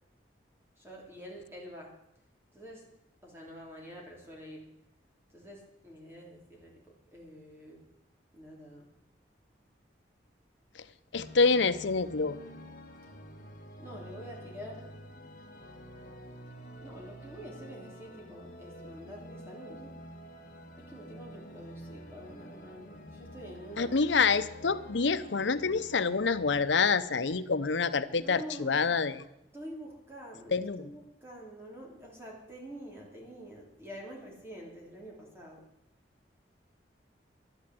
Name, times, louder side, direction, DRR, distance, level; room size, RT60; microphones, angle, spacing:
voice 1, 0.8-1.9 2.5-2.8 3.2-4.7 5.3-7.8 8.3-8.8 13.8-14.9 16.8-19.9 20.8-24.0 28.2-28.9 29.5-35.6, equal, 15° right, -2 dB, 3.5 m, -47 dB
voice 2, 11.1-12.4 23.8-29.2 30.5-30.9, left 4 dB, 85° left, 14 dB, 0.8 m, -27 dB
sound 1, 11.1-26.6, equal, 45° left, 1.9 m, -48 dB
12.5 x 11.5 x 7.8 m, 0.81 s
head